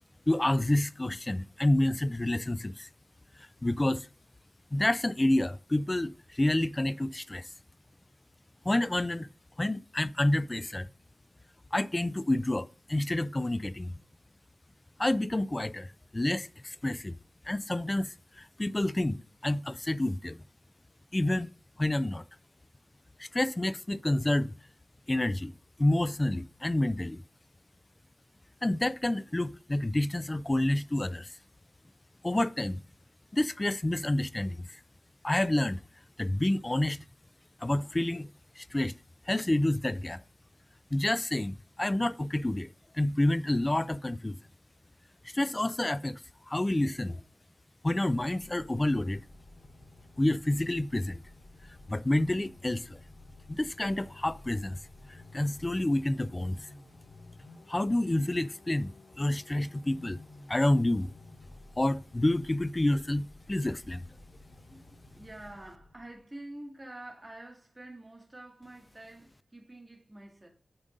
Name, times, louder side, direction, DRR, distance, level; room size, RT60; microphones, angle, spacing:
voice 1, 0.3-2.9 3.4-4.1 4.7-7.5 8.7-9.3 9.6-10.9 11.7-13.9 15.0-17.2 17.5-20.4 21.1-21.5 21.8-22.2 23.2-24.5 25.1-25.5 25.8-27.2 28.6-31.3 32.2-32.8 33.3-34.8 35.2-35.8 36.2-37.0 37.6-38.3 38.6-38.9 39.3-40.2 40.9-42.7 42.9-44.4 45.2-46.2 46.5-47.2 47.8-49.2 50.2-51.2 51.9-53.0 53.5-54.8 55.1-56.6 57.7-58.9 59.2-60.2 60.5-61.1 61.8-64.0, left 1 dB, 20° left, 0.3 m, -29 dB
sound 1, 48.2-66.3, left 2 dB, 70° left, 1.2 m, -53 dB
voice 2, 65.1-70.5, right 1 dB, 20° right, 1.9 m, -47 dB
9.7 x 5.1 x 2.6 m
wide cardioid pair, 70°, 0 cm